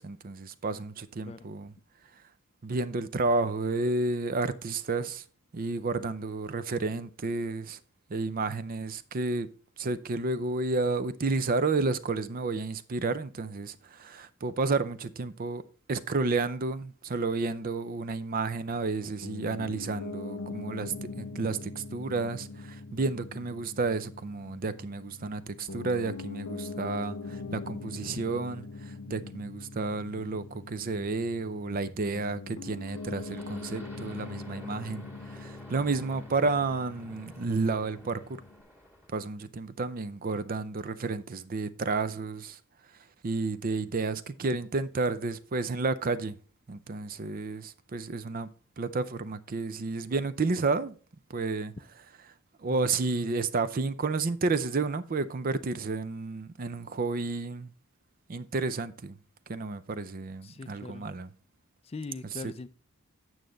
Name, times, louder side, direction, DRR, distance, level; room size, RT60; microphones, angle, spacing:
voice 1, 0.0-1.7 2.6-5.2 5.5-7.8 8.1-9.5 9.8-15.6 15.9-38.4 39.1-42.6 43.2-46.4 46.7-48.5 48.8-51.0 51.3-51.7 52.6-57.7 58.3-59.2 59.5-61.3 62.4-62.5, right 3 dB, 40° right, 0.5 m, -31 dB
Piano, 19.2-38.6, left 3 dB, 75° left, 0.8 m, -42 dB
sound 1, 32.8-39.2, left 1 dB, 10° right, 1.7 m, -51 dB
voice 2, 60.4-61.1 61.8-62.7, left 3 dB, 30° left, 0.4 m, -41 dB
9.0 x 6.3 x 3.9 m
head